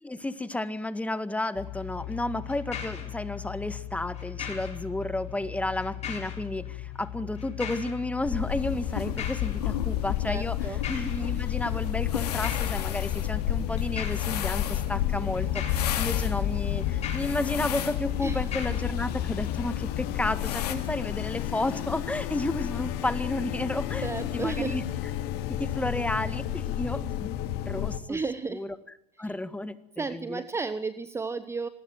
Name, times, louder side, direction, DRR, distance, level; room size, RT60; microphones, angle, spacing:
voice 1, 0.0-24.1 24.3-24.8 25.5-27.3 27.7-28.2 28.5-28.7 29.2-30.4, left 2 dB, 5° left, 13 dB, 1.7 m, -32 dB
sound 1, 1.5-21.3, left 11 dB, 35° left, 7.2 m, -38 dB
sound 2, 8.2-28.0, left 12 dB, 55° left, 2.3 m, -31 dB
sound 3, 8.5-20.7, left 10 dB, 80° left, 3.6 m, -36 dB
voice 2, 10.2-10.8 18.2-18.4 24.0-24.8 28.1-28.6 29.2-29.3 30.0-31.7, right 4 dB, 15° right, 13 dB, 1.1 m, -33 dB
26.0 x 20.0 x 7.8 m, 0.75 s
hypercardioid pair, 100°, 20 cm